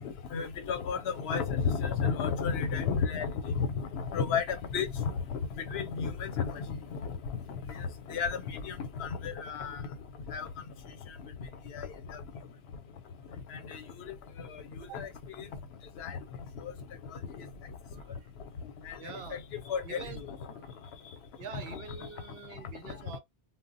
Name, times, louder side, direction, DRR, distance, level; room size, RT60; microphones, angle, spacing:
voice 1, 0.0-7.1 7.5-9.9 10.3-10.5 11.7-12.2 13.5-13.8 14.1-14.2 14.9-15.1 15.4-15.5 16.0-16.2 16.6-16.7 17.4-17.5 18.9-19.0 19.3-19.4 19.7-20.4 21.5-21.8, left 6 dB, 90° left, 0.9 m, -33 dB
voice 2, 17.9-18.3 19.0-19.4 19.8-20.2 20.5-20.7 21.4-23.2, right 7 dB, 75° right, 0.8 m, -45 dB
2.2 x 2.0 x 3.8 m
omnidirectional pair, 1.0 m